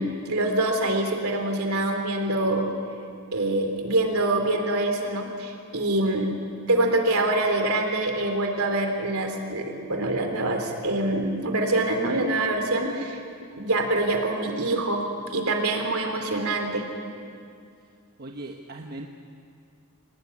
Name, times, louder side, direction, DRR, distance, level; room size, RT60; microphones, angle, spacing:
voice 1, 0.0-2.7 3.3-6.3 6.7-13.2 13.6-15.0 15.3-16.9, right 2 dB, 70° right, 4 dB, 3.7 m, -25 dB
voice 2, 18.2-19.1, right 2 dB, 45° right, 2 dB, 1.3 m, -38 dB
25.0 x 19.0 x 9.8 m, 2.3 s
head